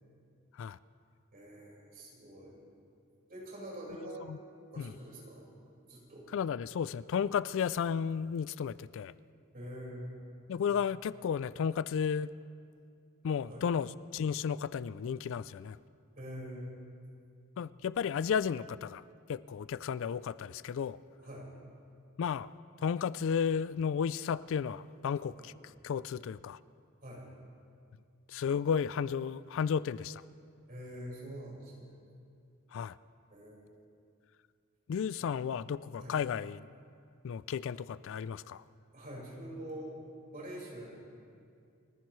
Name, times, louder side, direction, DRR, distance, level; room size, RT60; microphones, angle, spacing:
voice 1, 1.3-2.6 3.3-4.3 4.7-5.5 5.7-6.3 9.5-10.2 13.5-13.6 16.2-16.8 21.2-21.5 25.4-25.5 27.0-27.3 30.7-32.0 33.3-33.8 35.2-35.5 36.0-36.2 38.9-39.9 40.3-41.0, equal, 45° right, -4 dB, 5.0 m, -45 dB
voice 2, 6.3-9.1 10.5-12.3 13.2-15.8 17.6-19.0 19.3-21.0 22.2-22.5 22.8-25.5 25.8-26.6 28.3-30.2 32.7-33.0 34.9-36.7 37.2-38.6, left 7 dB, 65° left, 18 dB, 0.3 m, -33 dB
30.0 x 15.0 x 3.2 m, 2.3 s
head